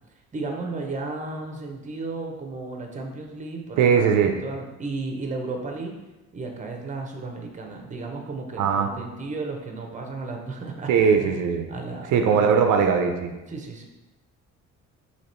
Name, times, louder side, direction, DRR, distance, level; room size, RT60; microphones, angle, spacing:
voice 1, 0.3-5.9 6.3-11.4 11.7-12.5 13.5-13.9, right 3 dB, 25° right, 3 dB, 0.7 m, -34 dB
voice 2, 3.8-4.3 8.6-8.9 10.9-11.6 12.1-13.3, right 6 dB, 80° right, 4 dB, 0.5 m, -20 dB
2.9 x 2.9 x 4.2 m, 1.0 s
cardioid pair, 90°, 30 cm